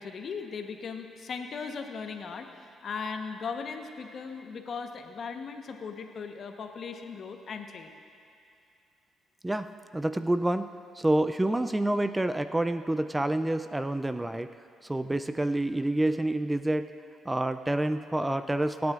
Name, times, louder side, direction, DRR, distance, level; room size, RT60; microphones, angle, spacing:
voice 1, 0.0-7.9, left 5 dB, 55° left, 5 dB, 1.0 m, -38 dB
voice 2, 9.4-10.7 11.0-14.5 14.8-16.9 17.3-18.9, right 1 dB, 10° right, 10 dB, 0.4 m, -28 dB
27.5 x 9.5 x 2.5 m, 2.4 s
cardioid pair, 90°, 0 cm